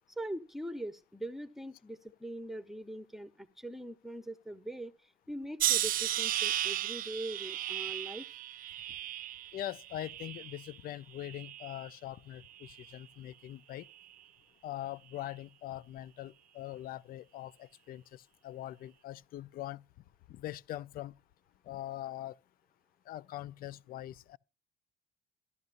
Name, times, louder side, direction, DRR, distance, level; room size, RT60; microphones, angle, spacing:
voice 1, 0.2-8.2, right 1 dB, ahead, 0.9 m, -42 dB
sound 1, 5.6-10.8 11.2-11.9 12.6-12.9, right 12 dB, 55° right, 0.5 m, -35 dB
voice 2, 9.5-13.9 14.6-19.8 20.3-21.1 21.6-22.4 23.1-24.4, left 13 dB, 60° left, 0.5 m, -42 dB
15.0 x 12.0 x 2.6 m
cardioid pair, 110°, 17 cm